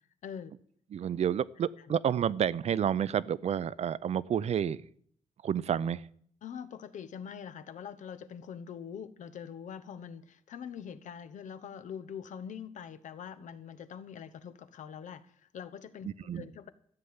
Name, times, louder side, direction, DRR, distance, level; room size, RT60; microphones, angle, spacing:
voice 1, 0.9-4.8 5.4-6.1 16.0-16.5, right 9 dB, 60° right, 20 dB, 0.5 m, -30 dB
voice 2, 6.4-16.7, left 7 dB, 90° left, 12 dB, 1.0 m, -44 dB
13.0 x 6.9 x 9.6 m, 0.62 s
wide cardioid pair, 140°, 12 cm